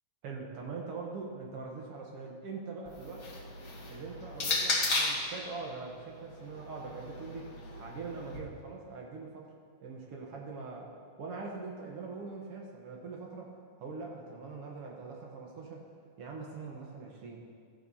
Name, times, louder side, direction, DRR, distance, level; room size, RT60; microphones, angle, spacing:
voice 1, 0.2-3.2 3.9-7.5 7.8-9.5 9.8-10.9 11.2-13.5 13.8-15.8 16.2-17.5, right 4 dB, 60° right, -1 dB, 1.6 m, -42 dB
sound 1, 2.9-5.3 6.3-8.4, left 3 dB, 80° left, 0.8 m, -34 dB
14.5 x 10.0 x 2.8 m, 2.2 s
omnidirectional pair, 3.6 m